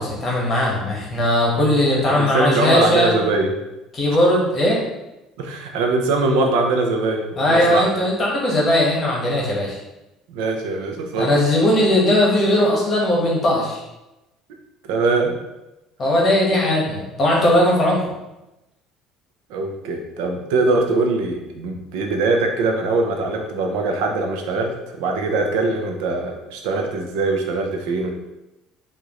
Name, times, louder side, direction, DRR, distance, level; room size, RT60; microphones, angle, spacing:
voice 1, 0.0-3.1 3.9-4.8 7.4-9.8 11.2-13.8 16.0-18.0, left 1 dB, 30° left, -3 dB, 1.2 m, -18 dB
voice 2, 2.0-3.5 5.4-7.9 10.3-11.4 14.8-15.4 19.5-28.1, right 3 dB, 90° right, 3 dB, 0.6 m, -22 dB
4.9 x 2.6 x 3.0 m, 0.96 s
cardioid pair, 135°, 0 cm